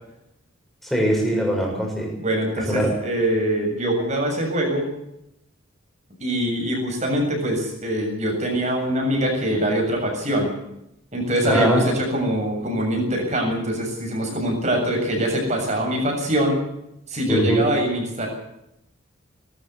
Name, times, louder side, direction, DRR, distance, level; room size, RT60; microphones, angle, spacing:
voice 1, 0.8-2.1 2.7-2.9 11.4-11.8 17.3-17.6, equal, ahead, 0 dB, 6.6 m, -21 dB
voice 2, 2.2-4.8 6.2-10.5 11.1-16.6 17.1-18.3, right 1 dB, 35° right, 2 dB, 7.3 m, -23 dB
21.0 x 13.5 x 9.5 m, 0.82 s
head